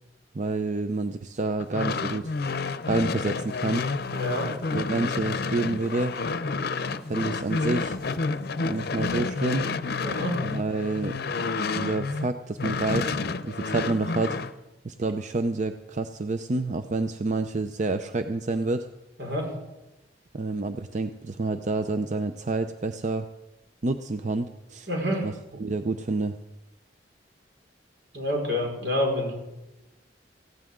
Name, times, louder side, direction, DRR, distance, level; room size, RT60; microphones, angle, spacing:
voice 1, 0.3-2.3 2.9-3.9 4.7-6.2 7.1-8.0 8.6-9.7 10.4-11.2 11.7-14.4 14.8-18.9 20.3-23.3 23.8-24.9 25.2-25.3 25.6-26.4, right 3 dB, 45° right, 9 dB, 0.5 m, -28 dB
sound 1, 1.6-12.3 12.6-14.5, left 4 dB, 60° left, 0.6 m, -29 dB
voice 2, 4.1-4.5 10.0-10.4 19.2-19.5 24.9-25.3 28.1-29.3, left 1 dB, 75° right, -1 dB, 5.0 m, -27 dB
18.5 x 15.5 x 3.7 m, 0.99 s
head